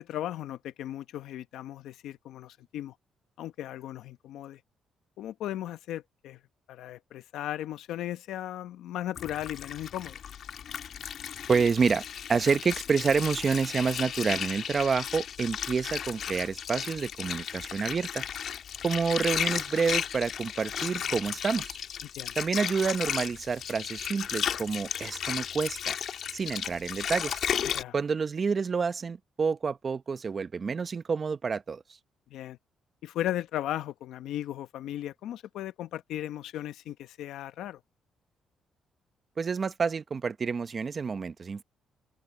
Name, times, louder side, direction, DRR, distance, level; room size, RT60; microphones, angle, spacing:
voice 1, 0.0-2.9 3.4-4.6 5.2-6.4 6.7-10.2 22.2-22.3 27.7-27.9 32.3-32.6 33.0-37.8, left 12 dB, 85° left, 1.0 m, -36 dB
Water, 9.2-27.8, left 8 dB, 65° left, 1.5 m, -34 dB
voice 2, 11.5-12.0 12.3-18.2 18.8-21.8 22.4-26.0 26.3-27.4 27.9-31.8 39.4-41.6, right 5 dB, 40° right, 0.9 m, -28 dB
cardioid pair, 90°, 0 cm